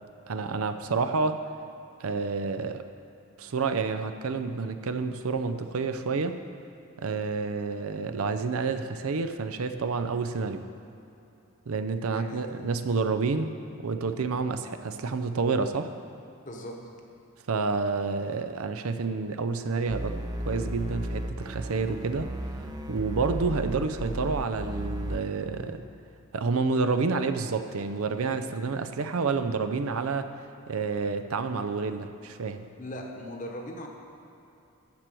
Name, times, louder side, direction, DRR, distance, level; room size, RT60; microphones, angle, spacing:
voice 1, 0.3-1.4 2.0-2.8 3.4-6.4 7.0-10.6 11.7-13.5 13.8-15.9 17.5-20.1 20.4-22.3 22.9-25.8 26.3-30.3 30.7-32.7, right 4 dB, 80° right, 9 dB, 0.5 m, -29 dB
voice 2, 12.1-12.4 16.4-16.8 32.8-33.9, equal, 35° left, 1 dB, 1.0 m, -38 dB
sound 1, 19.9-25.2, equal, 20° right, 0.5 m, -34 dB
13.0 x 4.5 x 7.6 m, 2.8 s
head